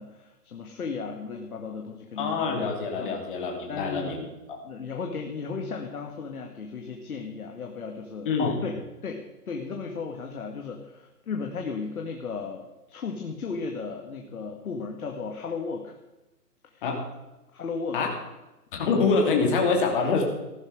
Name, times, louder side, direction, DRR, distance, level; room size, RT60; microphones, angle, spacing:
voice 1, 0.0-3.2 3.7-4.2 4.6-16.0 16.7-16.9 17.5-18.1, left 5 dB, 60° left, 3 dB, 2.0 m, -35 dB
voice 2, 2.2-4.6 8.2-8.5 16.8-17.1 17.9-18.1 18.7-20.2, left 4 dB, 30° left, 1 dB, 2.9 m, -25 dB
15.5 x 12.5 x 4.9 m, 1.0 s
hypercardioid pair, 160°, 47 cm